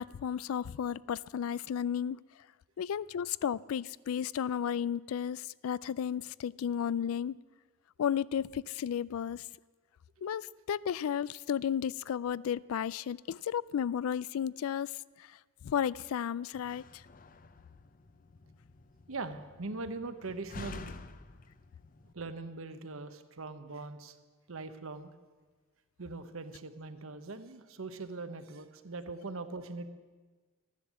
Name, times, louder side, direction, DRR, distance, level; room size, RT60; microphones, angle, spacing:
voice 1, 0.0-2.2 2.8-7.4 8.0-9.4 10.2-14.9 15.6-16.8, left 8 dB, 85° left, 21 dB, 0.3 m, -33 dB
Slam, 16.5-22.1, left 3 dB, 40° left, 0.6 m, -50 dB
voice 2, 19.1-21.0 22.1-24.2 24.5-25.1 26.0-29.9, right 3 dB, 75° right, 10 dB, 1.0 m, -41 dB
14.0 x 10.5 x 7.4 m, 1.3 s
head